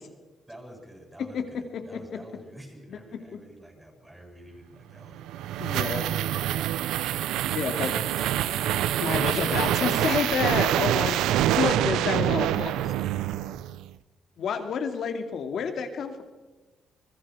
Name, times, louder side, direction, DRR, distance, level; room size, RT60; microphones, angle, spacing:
voice 1, 0.5-7.2 7.7-9.6, right 1 dB, 10° right, 0 dB, 7.9 m, -46 dB
sound 1, 5.0-13.9, right 13 dB, 90° right, 0.6 m, -26 dB
voice 2, 5.6-6.0 7.5-7.9 9.0-11.2 11.6-12.9 14.4-16.2, left 6 dB, 65° left, 6 dB, 2.6 m, -29 dB
26.0 x 21.0 x 5.0 m, 1.2 s
cardioid pair, 90°, 0 cm